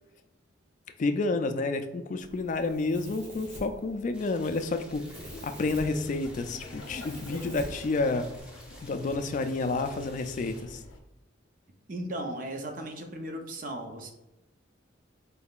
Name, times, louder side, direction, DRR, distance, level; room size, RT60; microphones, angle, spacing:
voice 1, 1.0-5.0 5.4-8.3 8.8-10.8, left 3 dB, 40° left, 8 dB, 0.3 m, -30 dB
Domestic sounds home sounds, 2.2-8.4, right 1 dB, 70° right, 1.3 m, -47 dB
sound 1, 4.1-10.6, left 1 dB, 5° right, 0.7 m, -53 dB
Laughter, 5.2-11.0, left 2 dB, 90° left, 0.6 m, -46 dB
voice 2, 11.9-14.1, right 1 dB, 45° right, 4 dB, 0.6 m, -36 dB
4.2 x 3.5 x 2.4 m, 0.95 s
head